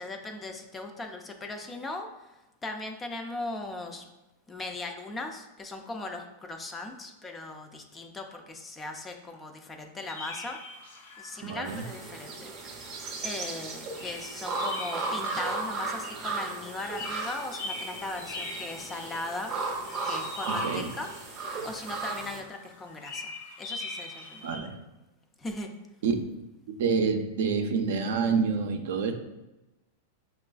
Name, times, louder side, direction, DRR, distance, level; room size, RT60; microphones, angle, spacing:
voice 1, 0.0-2.3 2.6-4.0 4.5-10.6 11.2-12.5 13.2-19.5 20.0-21.1 21.6-24.5 25.4-25.7, left 2 dB, 15° left, 4 dB, 0.3 m, -38 dB
sound 1, 10.1-24.6, left 2 dB, 70° left, 0.8 m, -43 dB
voice 2, 11.4-11.8 20.5-20.9 24.4-24.8 26.0-26.1 26.7-29.1, right 5 dB, 70° right, 5 dB, 0.4 m, -27 dB
sound 2, 11.7-22.4, right 3 dB, 30° right, 0.6 m, -35 dB
5.2 x 2.4 x 2.3 m, 1.0 s
supercardioid pair, 150°, 0 cm